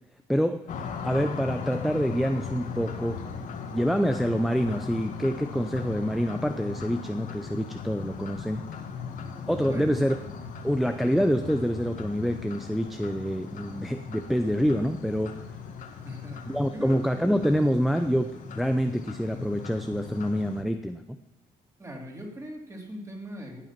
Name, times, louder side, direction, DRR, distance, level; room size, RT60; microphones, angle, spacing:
voice 1, 0.3-0.7 1.0-3.2 3.7-8.6 9.5-10.1 10.6-15.3 16.5-21.0, equal, ahead, 8 dB, 0.6 m, -26 dB
sound 1, 0.7-20.6, left 5 dB, 55° left, 1.9 m, -38 dB
voice 2, 16.0-16.9 21.8-23.6, equal, 20° right, 1 dB, 3.3 m, -40 dB
14.5 x 8.3 x 5.9 m, 0.88 s
cardioid pair, 120°, 16 cm